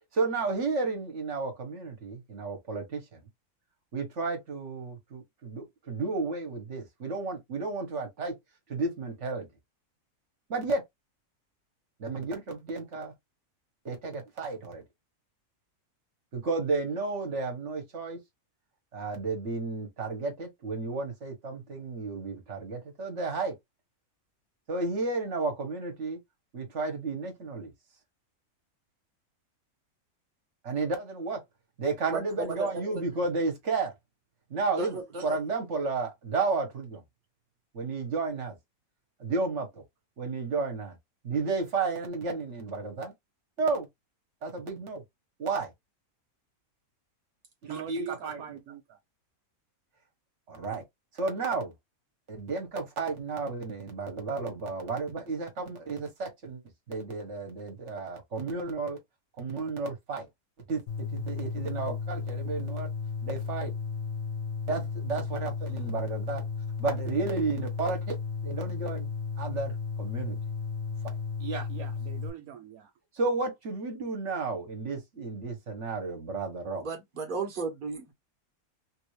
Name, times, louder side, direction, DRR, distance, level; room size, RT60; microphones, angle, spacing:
voice 1, 0.1-3.2 3.9-8.3 8.7-9.5 10.5-10.8 12.0-13.1 13.8-14.8 16.3-18.2 18.9-23.5 24.7-26.2 26.5-27.7 30.6-31.4 31.8-33.9 34.5-37.0 37.7-38.6 39.2-39.8 40.2-41.0 41.2-43.1 43.6-43.9 44.4-45.0 45.4-45.7 47.6-48.6 50.5-50.8 51.1-51.7 52.3-56.6 56.9-59.0 59.4-60.3 60.7-62.9 63.2-63.7 64.7-66.5 66.8-68.2 68.4-69.1 69.4-70.4 71.0-71.7 73.1-76.8, right 3 dB, 55° right, 1.5 m, -32 dB
voice 2, 47.7-49.0 71.7-72.9, right 10 dB, 75° right, 1.0 m, -42 dB
sound 1, 60.9-72.3, left 5 dB, 75° left, 1.4 m, -34 dB
voice 3, 76.8-78.1, right 4 dB, 40° right, 1.2 m, -34 dB
3.4 x 2.6 x 3.2 m
omnidirectional pair, 1.6 m